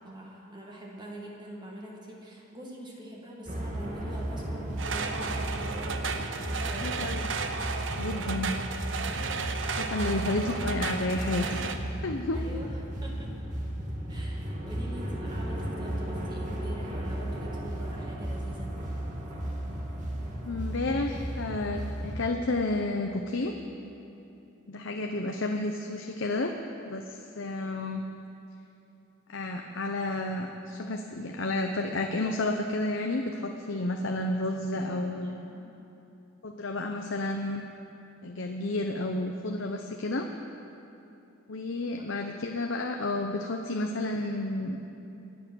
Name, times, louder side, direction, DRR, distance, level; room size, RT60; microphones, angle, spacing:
voice 1, 0.0-5.9 6.5-7.2 12.3-13.3 14.1-18.7 34.7-35.8 41.8-41.9 42.3-42.4, right 1 dB, 20° right, -2 dB, 2.0 m, -44 dB
sound 1, 3.5-22.3, right 1 dB, 40° right, 2.2 m, -35 dB
sound 2, 4.8-11.8, right 4 dB, 65° right, 0.8 m, -34 dB
voice 2, 6.8-7.3 8.0-8.5 9.8-11.7 12.0-12.4 20.4-23.5 24.7-26.5 26.8-28.0 29.3-35.5 36.4-37.6 38.2-40.3 41.5-44.8, left 2 dB, 65° left, 3 dB, 0.8 m, -31 dB
24.5 x 8.4 x 6.3 m, 2.9 s
head